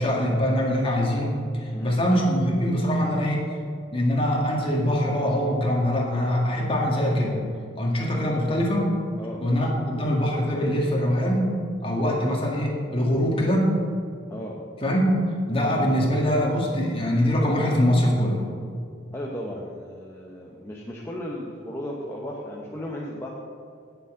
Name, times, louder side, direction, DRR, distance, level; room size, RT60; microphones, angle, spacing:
voice 1, 0.0-3.4 3.9-7.4 7.7-8.9 9.4-11.6 11.8-13.7 14.8-15.1 15.5-18.4, equal, 30° left, -2 dB, 1.9 m, -23 dB
voice 2, 19.1-23.3, equal, 15° left, -3 dB, 0.9 m, -35 dB
17.0 x 7.0 x 3.8 m, 2.3 s
head